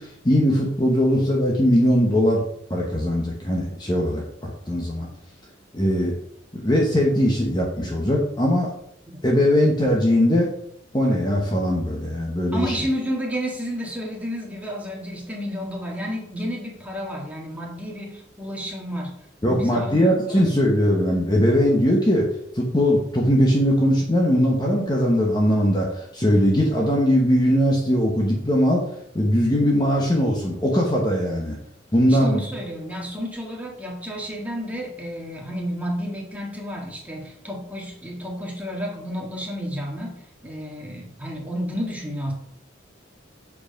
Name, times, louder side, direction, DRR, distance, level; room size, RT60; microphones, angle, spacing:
voice 1, 0.0-2.4 2.7-5.1 5.7-6.1 6.5-8.7 9.2-10.5 10.9-12.8 19.4-22.3 22.5-28.8 29.1-31.6 31.9-32.4, equal, 20° left, -1 dB, 1.0 m, -20 dB
voice 2, 12.5-19.1 19.4-19.9 20.3-20.4 32.1-42.3, equal, 10° right, -2 dB, 1.7 m, -31 dB
7.5 x 4.8 x 5.2 m, 0.71 s
head